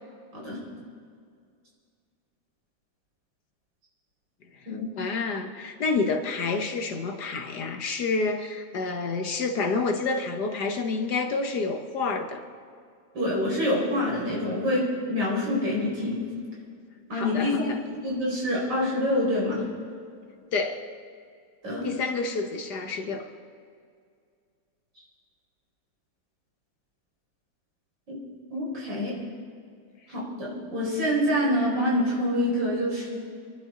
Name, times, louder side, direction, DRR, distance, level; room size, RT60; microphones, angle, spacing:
voice 1, 5.0-12.4 17.1-17.8 20.5-20.9 21.8-23.3, left 4 dB, 65° left, 5 dB, 1.7 m, -29 dB
voice 2, 13.1-16.2 17.1-17.7 17.9-19.6 21.6-21.9 28.5-29.1 30.1-33.2, left 1 dB, 75° right, -4 dB, 5.7 m, -26 dB
27.0 x 11.5 x 3.9 m, 2.2 s
omnidirectional pair, 2.0 m